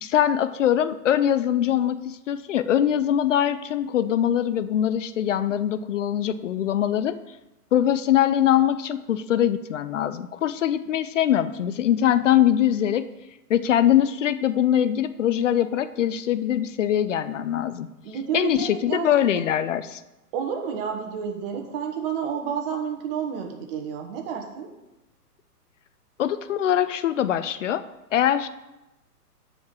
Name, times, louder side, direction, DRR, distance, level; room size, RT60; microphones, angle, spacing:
voice 1, 0.0-7.2 7.7-13.1 13.5-17.9 18.3-20.0 26.2-27.8 28.1-28.5, left 10 dB, 55° left, 14 dB, 0.5 m, -22 dB
voice 2, 18.0-19.1 19.3-19.5 20.3-24.7, right 7 dB, 35° right, 3 dB, 1.4 m, -30 dB
7.0 x 4.9 x 6.4 m, 0.97 s
hypercardioid pair, 135°, 47 cm